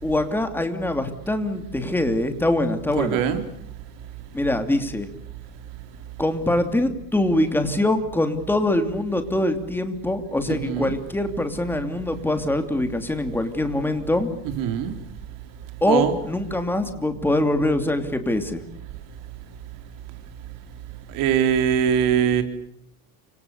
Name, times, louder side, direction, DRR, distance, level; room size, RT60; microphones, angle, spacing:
voice 1, 0.0-3.2 4.3-5.1 6.2-14.3 15.8-18.6, left 1 dB, 5° left, 7 dB, 2.8 m, -23 dB
voice 2, 3.0-3.4 10.5-10.9 14.4-14.9 15.9-16.1 21.1-22.4, right 9 dB, 50° right, 7 dB, 4.4 m, -22 dB
30.0 x 26.0 x 6.8 m, 0.73 s
cardioid pair, 155°, 41 cm